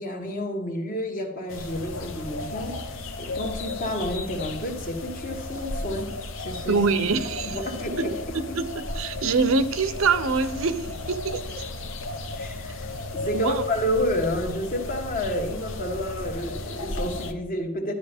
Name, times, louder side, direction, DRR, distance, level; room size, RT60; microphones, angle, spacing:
voice 1, 0.0-6.8 7.4-8.4 12.4-12.9 13.1-17.9, left 1 dB, 40° left, 3 dB, 1.4 m, -30 dB
sound 1, 1.5-17.3, left 2 dB, 60° left, 0.8 m, -34 dB
voice 2, 6.7-7.6 8.0-11.6 13.3-13.6, right 4 dB, 70° right, 12 dB, 0.7 m, -25 dB
11.5 x 9.8 x 3.5 m, 0.90 s
head